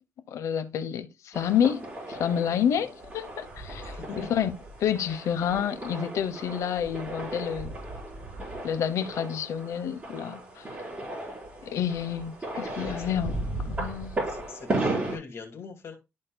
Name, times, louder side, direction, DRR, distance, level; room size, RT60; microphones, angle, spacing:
voice 1, 0.3-4.5 4.8-7.7 8.6-10.7 11.6-13.4 13.6-14.2, left 8 dB, 85° left, 0.9 m, -29 dB
sound 1, 1.3-15.2, right 2 dB, 30° right, 4.6 m, -35 dB
voice 2, 3.9-4.3 12.9-13.1 14.3-16.0, left 5 dB, 60° left, 2.2 m, -42 dB
12.5 x 4.3 x 2.2 m
cardioid pair, 95°, 5 cm